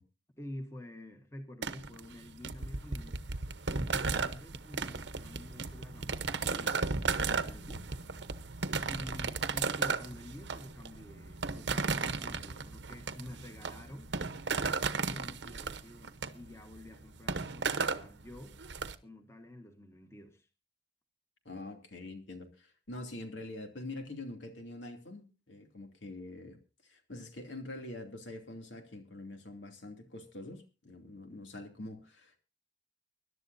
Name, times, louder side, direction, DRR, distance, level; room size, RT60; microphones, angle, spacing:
voice 1, 0.4-3.2 3.7-6.9 7.2-7.9 8.9-14.1 15.0-18.6 19.0-20.5, left 1 dB, 15° left, 1.4 m, -48 dB
sound 1, 1.6-18.9, right 4 dB, 75° right, 1.0 m, -35 dB
voice 2, 21.4-32.4, left 2 dB, 80° left, 2.8 m, -45 dB
24.5 x 11.5 x 2.7 m
head